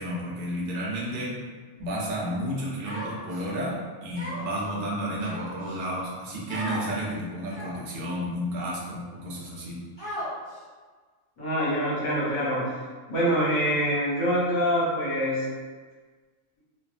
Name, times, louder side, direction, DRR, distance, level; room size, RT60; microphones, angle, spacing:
voice 1, 0.0-1.3 1.8-9.8, equal, 55° right, -5 dB, 0.6 m, -32 dB
Human voice, 2.8-3.4 4.2-4.6 5.2-5.8 6.5-6.8 7.5-7.9 8.6-8.7 10.0-10.6, equal, 25° left, 1.1 m, -36 dB
voice 2, 11.4-12.6 13.1-15.4, equal, 90° left, -8 dB, 1.6 m, -25 dB
3.2 x 2.1 x 2.4 m, 1.5 s
omnidirectional pair, 1.5 m